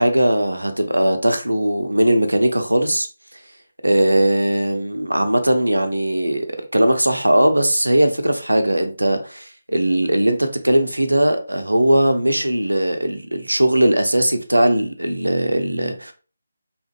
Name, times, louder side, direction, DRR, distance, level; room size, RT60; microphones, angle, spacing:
voice 1, 0.0-3.1 3.8-6.5 6.7-16.1, right 1 dB, 75° right, 0.5 m, -19 dB
2.8 x 2.5 x 2.2 m
figure-of-eight pair, 155°, 0 cm